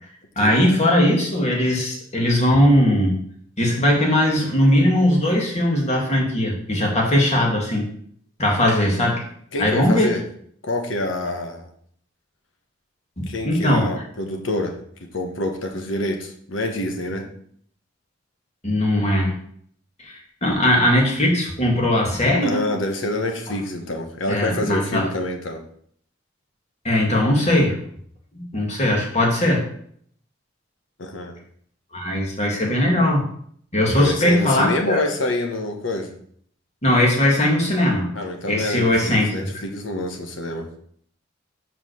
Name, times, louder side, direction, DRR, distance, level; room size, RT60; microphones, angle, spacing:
voice 1, 0.4-3.2 3.6-7.9 8.4-9.2 9.6-10.1 13.4-13.9 18.6-19.3 20.0-22.6 23.5-23.6 24.3-25.1 26.8-27.8 28.3-29.6 31.9-33.2 33.7-35.0 36.8-38.1 38.5-39.3, left 1 dB, 35° left, -1 dB, 2.1 m, -19 dB
voice 2, 9.5-10.2 10.6-11.7 13.3-14.8 15.1-17.3 22.4-25.6 31.0-31.4 33.9-36.2 38.1-40.7, left 1 dB, 85° left, 4 dB, 1.3 m, -26 dB
5.6 x 5.0 x 6.4 m, 0.63 s
head